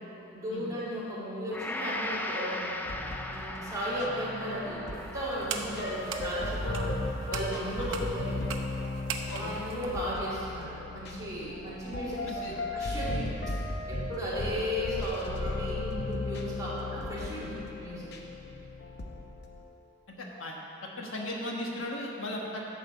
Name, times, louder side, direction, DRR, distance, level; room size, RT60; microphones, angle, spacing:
voice 1, 0.3-7.0 7.3-8.4 9.3-13.2 13.9-18.1, equal, 20° right, -9 dB, 2.5 m, -35 dB
Gong, 1.5-9.8 10.3-10.4, left 1 dB, 10° left, 0.4 m, -40 dB
sound 1, 2.9-19.6, left 2 dB, 55° left, 0.9 m, -36 dB
sound 2, 4.9-10.1, right 5 dB, 80° right, 0.7 m, -41 dB
voice 2, 20.1-20.6 21.0-22.6, left 1 dB, 90° left, -1 dB, 1.4 m, -37 dB
11.0 x 5.0 x 7.2 m, 2.9 s
head